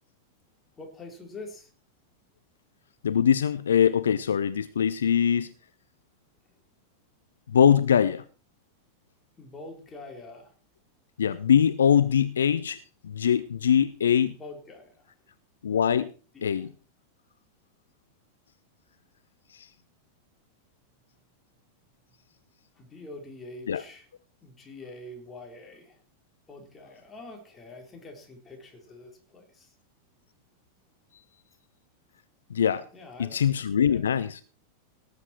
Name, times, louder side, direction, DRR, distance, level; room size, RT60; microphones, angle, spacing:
voice 1, 0.8-1.7 9.4-10.5 14.3-14.9 16.3-16.5 22.8-24.1 24.4-26.0 26.5-29.7 32.9-33.4 33.9-34.0, left 2 dB, 20° left, 4.0 m, -45 dB
voice 2, 3.0-5.5 7.5-8.2 11.2-14.3 15.6-16.1 16.4-16.7 19.5-19.7 23.7-23.8 32.5-32.9 33.2-34.4, left 8 dB, 65° left, 0.6 m, -23 dB
18.5 x 8.3 x 4.5 m
figure-of-eight pair, 90°, 0 cm